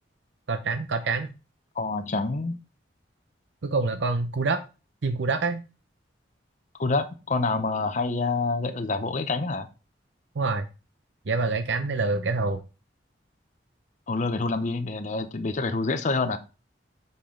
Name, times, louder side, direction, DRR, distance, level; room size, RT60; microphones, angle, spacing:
voice 1, 0.5-1.3 3.6-4.6 5.0-5.6 10.4-10.7 11.3-12.6, right 3 dB, 80° right, 8 dB, 0.6 m, -26 dB
voice 2, 1.8-2.6 6.8-9.7 14.1-16.4, left 3 dB, 40° left, 9 dB, 0.7 m, -27 dB
6.7 x 5.4 x 3.7 m, 0.31 s
head